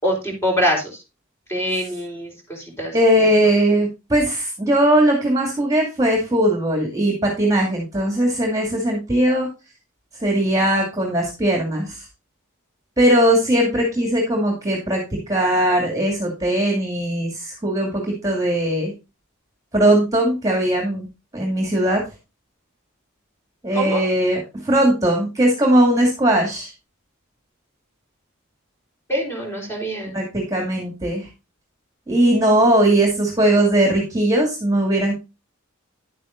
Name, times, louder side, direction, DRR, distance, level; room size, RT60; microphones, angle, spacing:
voice 1, 0.0-1.0 1.5-3.5 23.7-24.0 29.1-30.2, equal, 10° left, -1 dB, 3.9 m, -25 dB
voice 2, 2.9-9.5 10.2-12.0 13.0-15.0 15.3-18.9 19.7-21.1 21.3-22.0 23.6-26.7 30.1-31.3 32.1-35.2, right 1 dB, 15° right, 0 dB, 2.4 m, -19 dB
11.0 x 9.0 x 2.6 m, 0.27 s
head